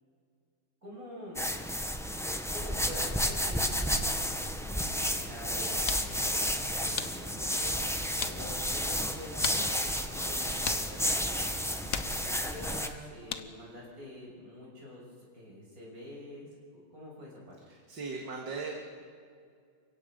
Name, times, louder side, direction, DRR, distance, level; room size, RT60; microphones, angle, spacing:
voice 1, 0.8-1.5 2.5-7.7 8.2-17.5, equal, 40° right, -3 dB, 7.2 m, -46 dB
sound 1, 1.3-12.9, equal, 5° left, 0.4 m, -31 dB
sound 2, 5.4-13.7, left 7 dB, 55° left, 1.1 m, -42 dB
voice 2, 17.7-19.0, right 4 dB, 60° right, 0 dB, 2.6 m, -39 dB
29.5 x 16.5 x 5.3 m, 2.2 s
omnidirectional pair, 2.3 m